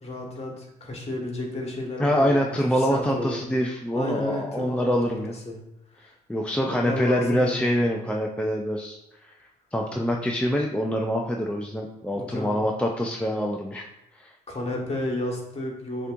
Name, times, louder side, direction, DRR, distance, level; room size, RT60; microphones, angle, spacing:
voice 1, 0.0-3.4 3.9-5.2 5.4-5.6 6.0-6.1 6.7-7.6 12.1-12.6 14.5-16.1, left 2 dB, 35° left, 0 dB, 1.6 m, -32 dB
voice 2, 2.0-5.3 6.0-9.3 9.7-13.9 14.2-14.3, equal, 5° left, 0 dB, 0.5 m, -25 dB
6.4 x 3.0 x 2.5 m, 0.90 s
hypercardioid pair, 55°, 19 cm